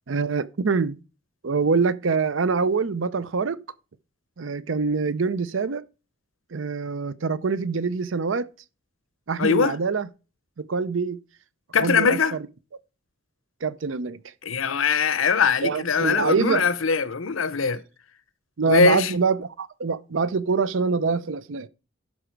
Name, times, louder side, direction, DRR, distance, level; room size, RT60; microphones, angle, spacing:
voice 1, 0.1-1.0 1.4-3.6 4.4-5.8 6.5-8.5 9.3-10.1 10.6-11.2 11.8-12.5 13.6-14.2 15.6-16.7 18.6-21.7, right 5 dB, 75° right, 0.6 m, -25 dB
voice 2, 9.4-9.8 11.7-12.4 14.4-17.8 18.7-19.1, left 5 dB, 90° left, 0.8 m, -21 dB
11.5 x 5.0 x 4.5 m
head